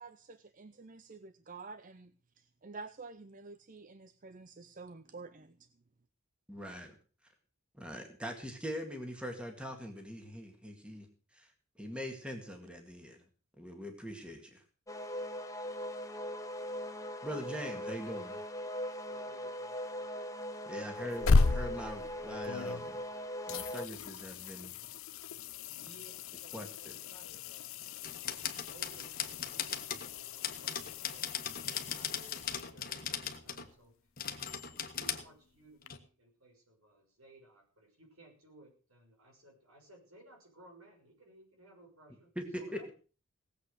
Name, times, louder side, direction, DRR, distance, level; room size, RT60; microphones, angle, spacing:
voice 1, 0.0-5.7, right 4 dB, 35° right, 12 dB, 0.6 m, -49 dB
voice 2, 6.5-7.0 7.7-11.1 11.3-13.2 13.6-14.6 17.2-18.4 20.7-23.0 23.5-24.7 26.5-26.9 42.4-42.6, equal, 5° right, 4 dB, 1.9 m, -42 dB
sound 1, 14.9-23.9, equal, 15° left, 1.0 m, -40 dB
voice 3, 19.0-20.2 20.8-21.1 25.6-27.8 28.7-29.7 30.0-34.0 34.9-42.3 42.6-42.9, right 1 dB, 75° right, 2 dB, 6.5 m, -59 dB
sound 2, 20.9-23.1 23.5-33.1 35.9-36.0, left 3 dB, 65° left, 0.6 m, -35 dB
sound 3, 28.0-30.1 30.4-33.7 34.2-35.2 35.9-36.0, left 8 dB, 40° left, 1.5 m, -38 dB
18.0 x 8.1 x 6.6 m, 0.38 s
head